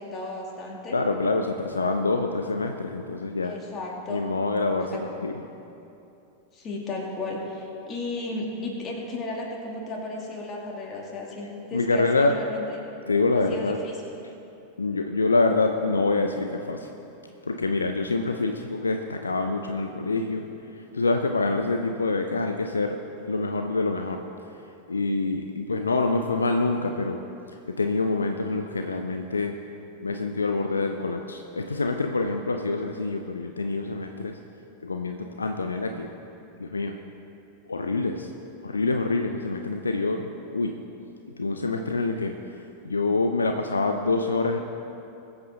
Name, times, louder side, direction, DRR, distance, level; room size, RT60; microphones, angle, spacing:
voice 1, 0.0-1.0 3.4-4.3 4.9-5.0 6.5-12.6 13.5-13.9, left 2 dB, 25° left, -2 dB, 2.7 m, -34 dB
voice 2, 0.9-3.5 4.1-5.3 11.7-12.4 13.1-13.8 14.8-16.9 17.4-20.5 20.9-23.0 23.3-24.2 24.9-27.2 27.7-29.5 30.0-34.4 34.8-36.1 36.6-37.0 37.7-38.3 38.6-40.7 41.4-42.4 42.8-44.6, left 3 dB, 75° left, 5 dB, 0.6 m, -26 dB
21.5 x 8.1 x 3.9 m, 2.8 s
figure-of-eight pair, 90°, 0 cm